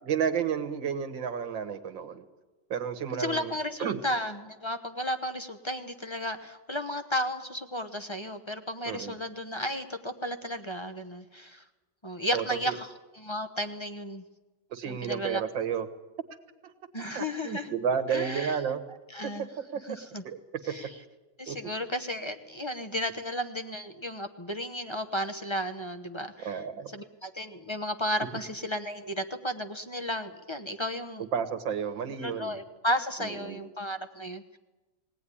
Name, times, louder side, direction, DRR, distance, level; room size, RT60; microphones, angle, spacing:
voice 1, 0.0-2.3 2.7-3.5 3.8-4.0 8.9-9.2 12.3-12.8 14.7-15.9 16.6-16.7 17.1-18.8 19.2-19.3 19.7-20.0 20.2-20.4 21.5-21.6 26.4-26.9 31.3-32.6 33.2-33.6, right 7 dB, 85° right, 10 dB, 2.1 m, -31 dB
voice 2, 3.2-11.6 12.0-14.2 14.9-15.4 16.9-17.7 18.1-18.6 19.1-19.5 19.8-20.2 20.6-20.9 21.4-26.6 26.9-31.2 32.1-34.6, equal, 25° left, 9 dB, 0.6 m, -34 dB
20.5 x 18.0 x 10.0 m, 1.2 s
omnidirectional pair, 2.0 m